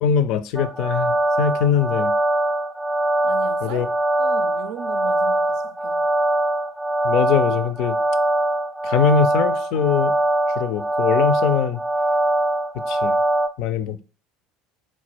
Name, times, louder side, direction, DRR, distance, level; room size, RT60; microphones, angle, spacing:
voice 1, 0.0-2.1 3.6-3.9 7.0-8.0 8.8-10.1 10.6-11.8 12.9-13.1 13.6-14.0, left 7 dB, 55° left, 0.4 m, -22 dB
sound 1, 0.6-13.5, right 1 dB, 5° right, 0.5 m, -22 dB
voice 2, 3.2-3.9 4.2-6.1, right 7 dB, 60° right, 0.4 m, -37 dB
4.1 x 2.1 x 4.2 m
figure-of-eight pair, 65°, 0 cm